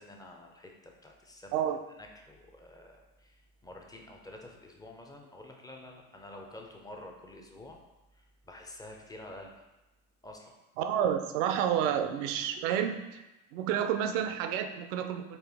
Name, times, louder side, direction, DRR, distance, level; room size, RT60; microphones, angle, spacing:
voice 1, 0.0-1.6 2.0-7.8 8.1-9.6 10.2-10.5, left 1 dB, 10° left, 1 dB, 0.4 m, -49 dB
voice 2, 10.8-13.2 13.5-15.4, right 9 dB, 65° right, 7 dB, 0.5 m, -30 dB
4.2 x 2.5 x 3.4 m, 1.0 s
hypercardioid pair, 85°, 41 cm